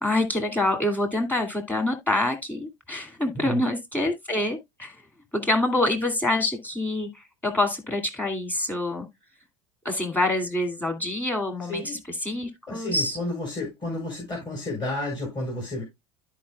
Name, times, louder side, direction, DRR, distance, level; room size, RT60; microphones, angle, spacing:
voice 1, 0.0-5.0 5.3-9.1 9.8-13.2, left 1 dB, 10° left, 2.4 m, -26 dB
voice 2, 11.7-12.0 12.7-15.8, left 1 dB, 30° left, 4.5 m, -31 dB
13.0 x 4.7 x 2.3 m
hypercardioid pair, 85°, 16 cm